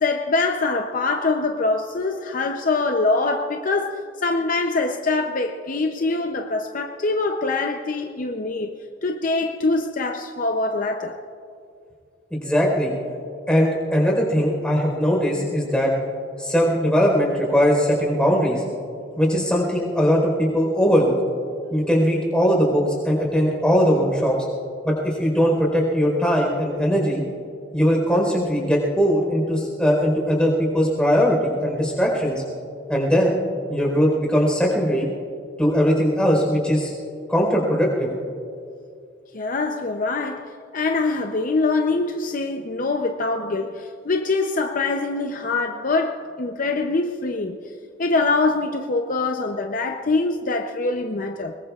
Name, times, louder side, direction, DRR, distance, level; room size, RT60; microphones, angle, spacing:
voice 1, 0.0-11.2 16.4-16.5 19.3-19.4 39.3-47.6 48.0-51.5, left 3 dB, 50° left, 0.6 m, -24 dB
voice 2, 12.3-12.9 13.5-15.9 16.4-18.6 19.2-21.1 21.7-24.4 24.8-27.2 27.7-32.4 32.9-33.4 33.7-35.1 35.6-36.9 37.3-38.1, equal, 5° left, 4.2 m, -20 dB
24.0 x 21.0 x 2.4 m
head